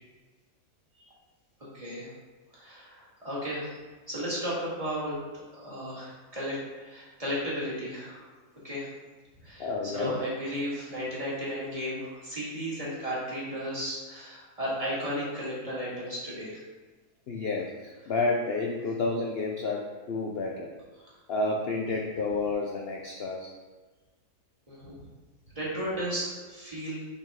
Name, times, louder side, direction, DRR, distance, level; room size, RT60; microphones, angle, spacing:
voice 1, 1.7-2.1 2.5-3.8 4.1-8.2 8.6-8.9 9.4-16.6 24.7-25.0 25.5-27.0, equal, 20° right, -7 dB, 2.0 m, -34 dB
voice 2, 9.6-10.2 17.3-20.7 21.3-23.5, left 3 dB, 70° left, 0 dB, 0.5 m, -30 dB
6.6 x 5.2 x 3.6 m, 1.3 s
omnidirectional pair, 1.7 m